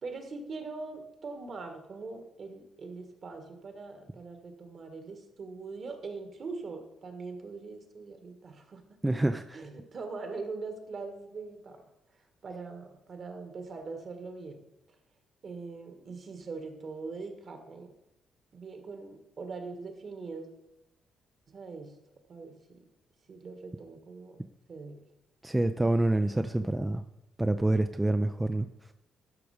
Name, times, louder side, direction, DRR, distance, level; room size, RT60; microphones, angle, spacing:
voice 1, 0.0-9.0 9.5-11.8 12.4-14.5 15.4-17.9 18.5-20.5 21.5-21.9 22.3-22.8 23.3-24.4 24.7-25.0, right 4 dB, 50° right, 5 dB, 1.6 m, -42 dB
voice 2, 9.0-9.6 25.4-27.0 27.4-28.7, right 2 dB, 10° right, 8 dB, 0.4 m, -27 dB
12.0 x 5.0 x 4.9 m, 0.89 s
cardioid pair, 90°, 0 cm